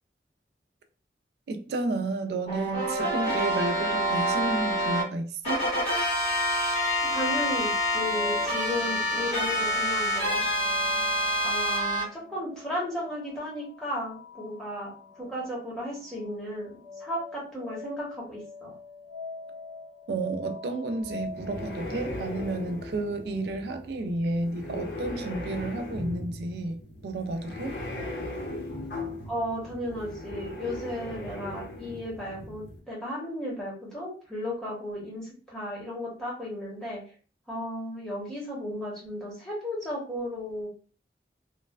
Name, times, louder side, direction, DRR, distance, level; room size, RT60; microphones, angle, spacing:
voice 1, 1.5-5.7 20.1-26.8 27.0-27.7, right 2 dB, 65° right, 0.3 m, -31 dB
sound 1, 2.5-5.0 5.4-12.0, equal, 35° left, 1.4 m, -27 dB
voice 2, 7.1-10.4 11.4-14.9 15.2-16.7 17.0-18.7 29.2-37.0 37.5-40.7, left 1 dB, 5° left, 1.0 m, -34 dB
sound 2, 7.9-23.5, left 4 dB, 20° right, 0.8 m, -44 dB
sound 3, 21.0-32.8, left 1 dB, 80° left, 0.9 m, -38 dB
3.1 x 2.1 x 2.3 m
head